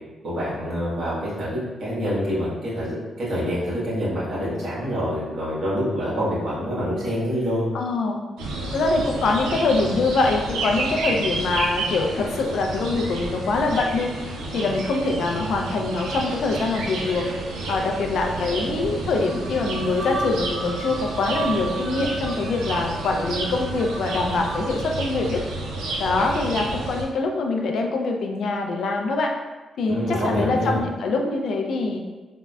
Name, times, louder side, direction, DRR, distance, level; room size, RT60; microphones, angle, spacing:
voice 1, 0.2-1.5 1.8-7.7 29.8-30.8, equal, 65° right, -9 dB, 1.4 m, -26 dB
voice 2, 7.7-8.2 8.7-14.2 14.5-17.3 17.7-25.4 26.0-29.3 29.8-32.0, left 3 dB, 70° left, 2 dB, 0.3 m, -24 dB
sound 1, 8.4-27.1, right 2 dB, 90° right, 0.4 m, -30 dB
sound 2, 19.2-24.9, right 3 dB, 30° right, 1.1 m, -36 dB
3.5 x 2.0 x 2.3 m, 1.2 s
cardioid pair, 70°, 0 cm